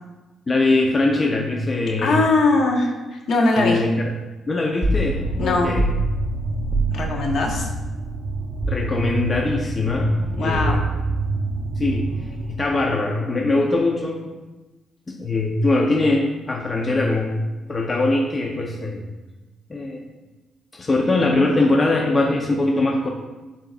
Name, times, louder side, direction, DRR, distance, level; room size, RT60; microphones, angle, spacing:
voice 1, 0.5-2.2 3.6-4.1 4.5-5.9 6.3-6.4 8.6-10.8 11.8-14.2 15.1-17.4 17.7-19.1 19.7-20.0 20.7-23.1, left 2 dB, 30° left, 0 dB, 0.8 m, -22 dB
voice 2, 2.0-3.8 5.4-5.7 6.9-7.7 10.4-10.8, left 2 dB, 65° left, 0 dB, 1.3 m, -20 dB
sound 1, 4.8-5.1 5.8-6.0 6.7-7.0 8.6-8.9 10.5-11.1, right 1 dB, 5° right, 1.2 m, -23 dB
sound 2, 4.9-12.7, right 2 dB, 70° right, 0.9 m, -28 dB
11.5 x 4.0 x 2.5 m, 1.2 s
cardioid pair, 90°, 0 cm